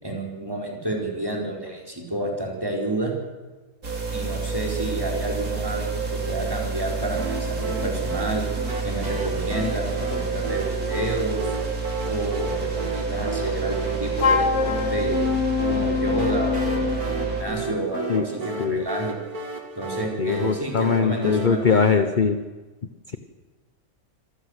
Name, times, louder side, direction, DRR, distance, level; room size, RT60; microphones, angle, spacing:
voice 1, 0.0-3.1 4.1-8.4 8.8-11.5 12.1-15.2 15.7-19.2 19.8-22.0, right 1 dB, 15° right, 0 dB, 4.6 m, -30 dB
sound 1, 3.8-17.4, right 4 dB, 70° right, 3.7 m, -28 dB
sound 2, 7.2-21.9, right 3 dB, 90° right, 3.1 m, -34 dB
Wind instrument woodwind instrument, 14.2-17.1, left 7 dB, 55° left, 1.5 m, -24 dB
voice 2, 20.2-22.4, left 5 dB, 40° left, 10 dB, 1.0 m, -21 dB
26.0 x 15.0 x 8.2 m, 1.2 s
omnidirectional pair, 1.5 m